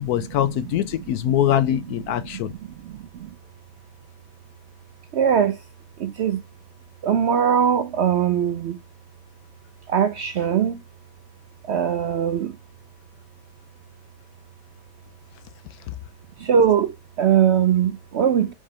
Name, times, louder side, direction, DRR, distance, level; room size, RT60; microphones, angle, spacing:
voice 1, 0.0-2.5, left 11 dB, 80° left, 1.1 m, -23 dB
voice 2, 2.8-3.3 5.1-5.6 6.0-6.4 7.0-8.8 9.9-10.8 11.6-12.5 16.4-18.5, right 8 dB, 65° right, 0.6 m, -21 dB
4.9 x 4.6 x 4.2 m
omnidirectional pair, 1.6 m